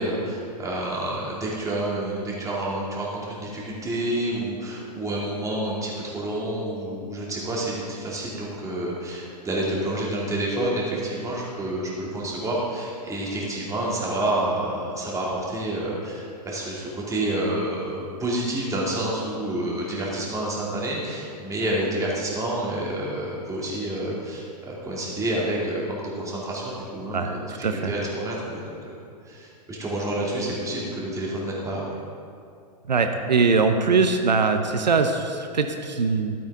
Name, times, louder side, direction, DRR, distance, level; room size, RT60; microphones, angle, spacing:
voice 1, 0.0-28.9 29.2-31.9, right 1 dB, 15° right, -4 dB, 2.5 m, -29 dB
voice 2, 27.1-27.9 32.9-36.3, right 4 dB, 90° right, 7 dB, 0.7 m, -22 dB
12.0 x 8.8 x 3.6 m, 2.5 s
hypercardioid pair, 110°, 21 cm